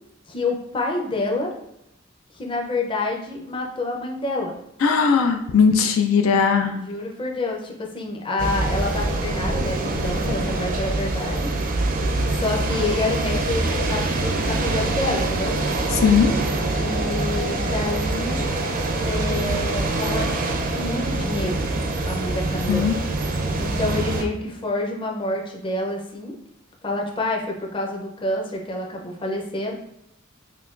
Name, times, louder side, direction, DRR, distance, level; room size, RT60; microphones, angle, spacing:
voice 1, 0.3-1.5 2.3-4.5 6.7-11.5 12.3-15.5 16.7-18.4 19.0-21.6 22.0-22.9 23.5-26.3 26.8-29.7, left 2 dB, 25° left, 0 dB, 0.6 m, -28 dB
voice 2, 4.8-6.8 15.9-16.3 22.7-22.9, left 6 dB, 85° left, 5 dB, 0.4 m, -18 dB
sound 1, 8.4-24.2, right 2 dB, 45° right, 0.4 m, -24 dB
5.7 x 2.2 x 2.4 m, 0.80 s
head